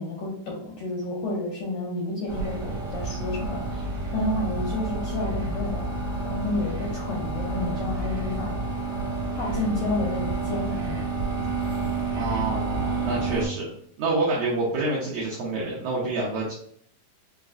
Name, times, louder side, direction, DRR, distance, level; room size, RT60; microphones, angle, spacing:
voice 1, 0.0-3.8 4.1-5.9 6.2-8.6 9.4-11.2, left 2 dB, 80° left, -4 dB, 1.7 m, -30 dB
sound 1, 2.3-13.5, right 3 dB, 40° right, 1.5 m, -29 dB
voice 2, 12.1-13.7 14.0-16.5, right 2 dB, 85° right, -5 dB, 1.8 m, -27 dB
5.7 x 2.4 x 2.5 m, 0.65 s
omnidirectional pair, 4.3 m